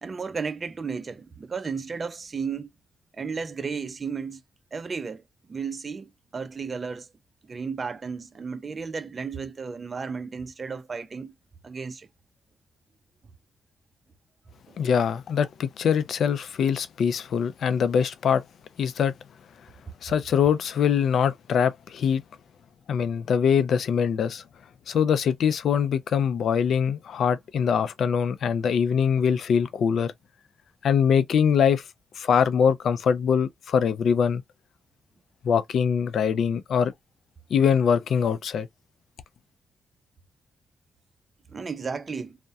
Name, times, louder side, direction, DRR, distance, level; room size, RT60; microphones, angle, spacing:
voice 1, 0.0-2.7 3.2-4.4 4.7-5.2 5.5-7.1 7.5-11.3 11.6-12.1 14.7-14.8 41.5-42.4, right 5 dB, 40° right, 0.4 m, -33 dB
voice 2, 14.8-18.4 18.8-19.1 20.0-22.2 22.9-24.4 24.9-30.1 30.8-31.8 32.2-34.4 35.4-36.9 37.5-38.7, left 7 dB, 70° left, 0.4 m, -23 dB
2.3 x 2.1 x 2.6 m
supercardioid pair, 60°, 0 cm